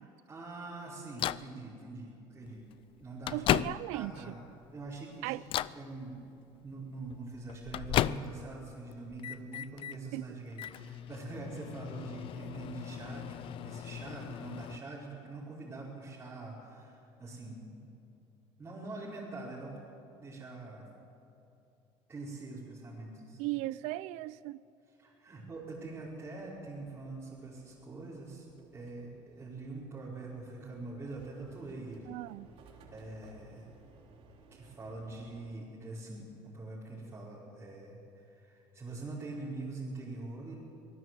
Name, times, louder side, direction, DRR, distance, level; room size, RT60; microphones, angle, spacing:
voice 1, 0.0-2.7 3.0-4.4 4.7-5.4 5.7-6.2 6.6-17.8 18.6-20.9 22.1-23.5 25.0-28.5 28.7-32.1 32.9-33.7 34.5-40.5, right 3 dB, 20° right, 5.4 m, -44 dB
Microwave oven, 1.2-1.5 2.5-2.6 3.0-4.1 4.6-5.0 5.4-5.8 7.1-8.6 8.9-10.0 10.5-14.8, left 13 dB, 50° left, 0.5 m, -35 dB
voice 2, 3.3-4.3 5.2-5.4 10.1-10.3 23.4-24.6 32.1-32.5, right 18 dB, 80° right, 0.5 m, -37 dB
sound 1, 25.5-35.5, right 4 dB, 60° right, 3.6 m, -60 dB
24.5 x 18.5 x 7.9 m
cardioid pair, 125°, 11 cm